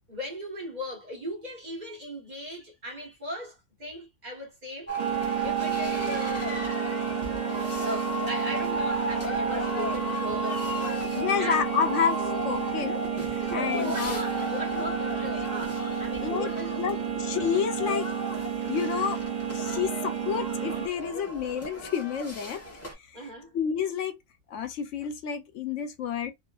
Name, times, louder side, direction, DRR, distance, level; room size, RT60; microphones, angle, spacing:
voice 1, 0.1-4.9 5.4-6.5 7.5-11.6 13.4-17.0 23.1-23.6, left 1 dB, 35° right, 1.3 m, -38 dB
sound 1, 4.9-22.9, equal, 15° left, 0.8 m, -34 dB
sound 2, 5.0-20.9, right 8 dB, 80° right, 0.3 m, -31 dB
Wind instrument woodwind instrument, 5.6-9.0 9.3-12.4 12.7-12.9, left 5 dB, 50° left, 0.8 m, -47 dB
voice 2, 11.1-13.0 13.3-14.2 16.2-18.1 18.7-19.2 19.5-22.6 23.1-23.2 23.5-24.2 24.5-26.3, left 7 dB, 75° left, 1.0 m, -29 dB
2.6 x 2.5 x 2.3 m
omnidirectional pair, 1.3 m